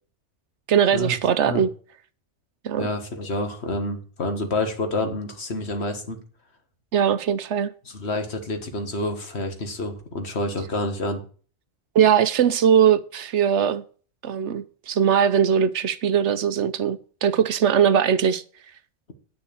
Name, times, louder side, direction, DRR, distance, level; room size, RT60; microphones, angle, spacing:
voice 1, 0.7-1.7 2.6-2.9 6.9-7.7 11.9-13.8 14.2-18.4, right 8 dB, 75° right, 1.0 m, -20 dB
voice 2, 2.8-6.2 7.9-11.2, left 2 dB, 60° left, 1.9 m, -28 dB
9.3 x 6.5 x 7.1 m
omnidirectional pair, 1.2 m